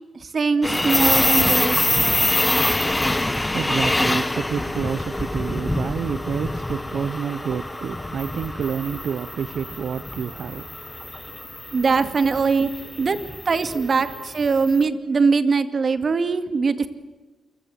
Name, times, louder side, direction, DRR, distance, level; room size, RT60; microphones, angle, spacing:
voice 1, 0.1-2.4 11.7-12.7 13.0-13.2 13.5-16.9, right 4 dB, 45° right, 2.3 m, -22 dB
sound 1, 0.6-14.7, left 1 dB, 10° left, 1.5 m, -25 dB
voice 2, 3.3-11.7 13.7-13.9, right 7 dB, 70° right, 1.0 m, -29 dB
28.5 x 26.0 x 7.9 m
wide cardioid pair, 115°, 0 cm